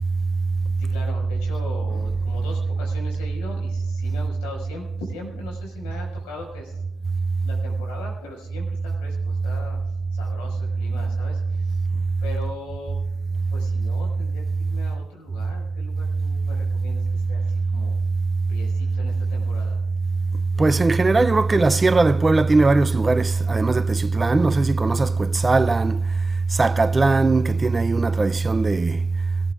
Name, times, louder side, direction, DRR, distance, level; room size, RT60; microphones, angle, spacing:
voice 1, 0.8-6.8 7.4-11.8 12.2-13.0 13.5-18.0 18.5-19.8, left 2 dB, 85° left, 5.6 m, -40 dB
voice 2, 20.6-26.0 26.6-29.0, right 3 dB, 25° right, 0.5 m, -19 dB
22.5 x 14.5 x 2.5 m
supercardioid pair, 65°, 0 cm